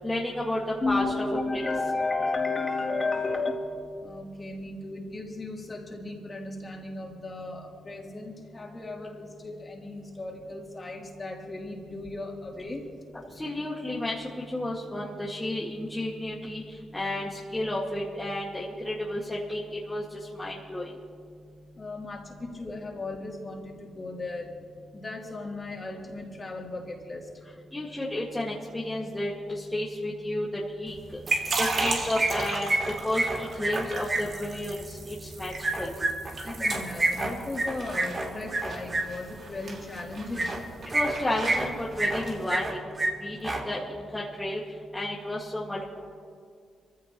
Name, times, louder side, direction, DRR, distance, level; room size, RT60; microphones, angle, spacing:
voice 1, 0.0-0.6 0.9-1.0 1.5-1.6 13.4-16.6 16.9-20.0 20.3-20.9 27.7-30.5 30.8-31.0 31.6-35.9 40.9-42.9 43.2-44.6 44.9-45.8, left 1 dB, 15° left, -5 dB, 2.0 m, -32 dB
voice 2, 0.8-3.6 4.0-12.8 21.7-24.5 24.9-27.3 36.4-40.6, left 3 dB, 30° left, -1 dB, 3.2 m, -34 dB
sound 1, 30.9-42.4, right 3 dB, 55° right, 2.4 m, -36 dB
sound 2, 31.3-31.9 32.2-34.2 35.6-39.0 40.3-40.6 40.9-41.7 42.0-42.7 43.0-43.1 43.4-43.6, right 2 dB, 35° right, 3.1 m, -28 dB
25.0 x 15.0 x 3.1 m, 2.2 s
cardioid pair, 75°, 0 cm